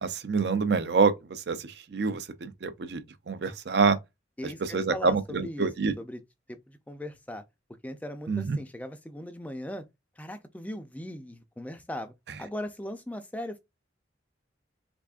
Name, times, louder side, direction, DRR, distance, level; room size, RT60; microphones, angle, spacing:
voice 1, 0.0-4.0 4.6-5.9 8.3-8.6, right 4 dB, 60° right, 0.5 m, -27 dB
voice 2, 4.4-5.7 6.0-6.2 6.5-7.4 7.8-9.8 10.2-12.1 12.4-13.6, left 1 dB, 10° left, 0.4 m, -38 dB
3.5 x 3.5 x 2.4 m
head